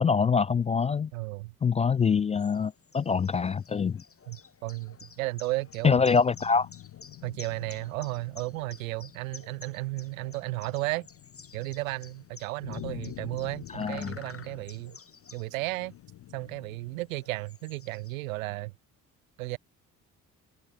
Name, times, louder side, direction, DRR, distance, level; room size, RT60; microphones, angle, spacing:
voice 1, 0.0-1.1 1.6-4.0 5.8-6.7 13.7-14.2, left 5 dB, 20° left, 0.3 m, -24 dB
voice 2, 1.1-1.5 4.3-6.0 7.2-11.1 11.5-15.0 15.3-15.9 16.3-18.7 19.4-19.6, right 21 dB, 75° right, 0.6 m, -34 dB
sound 1, 1.9-18.5, left 6 dB, 35° left, 2.6 m, -53 dB
sound 2, 4.6-17.2, left 14 dB, 50° left, 1.0 m, -48 dB
figure-of-eight pair, 40°, 41 cm